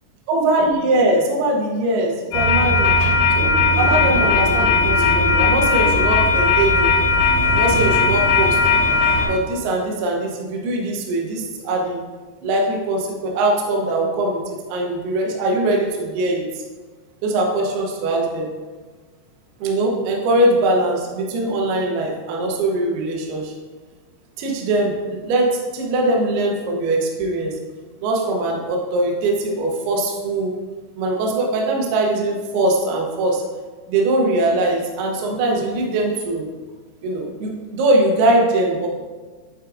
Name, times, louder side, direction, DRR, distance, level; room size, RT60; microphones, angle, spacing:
voice 1, 0.3-2.9 3.3-3.5 3.8-6.9 7.5-8.6 9.3-12.0 12.4-14.4 14.7-16.6 17.2-18.5 19.6-23.5 24.4-27.5 28.0-30.5 31.0-33.4 33.9-36.5 37.0-38.9, right 2 dB, 90° right, -1 dB, 2.2 m, -21 dB
sound 1, 2.3-9.3, left 3 dB, 65° left, 2.2 m, -17 dB
8.7 x 4.8 x 2.5 m, 1.3 s
omnidirectional pair, 5.8 m